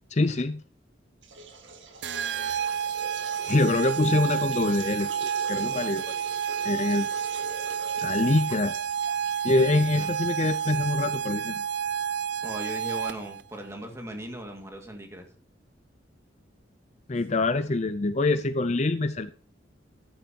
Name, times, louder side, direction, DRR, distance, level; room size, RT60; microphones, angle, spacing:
voice 1, 0.1-0.6 3.5-6.2 6.6-7.1 8.0-8.8 9.4-11.6 17.1-19.3, left 2 dB, 35° left, 12 dB, 0.5 m, -25 dB
sound 1, 1.2-9.8, right 3 dB, 85° right, 1.9 m, -43 dB
sound 2, 2.0-13.4, right 8 dB, 65° right, 0.6 m, -30 dB
voice 2, 9.6-10.1 12.4-15.3, equal, 15° right, 3 dB, 2.0 m, -38 dB
13.5 x 10.5 x 2.9 m, 0.44 s
head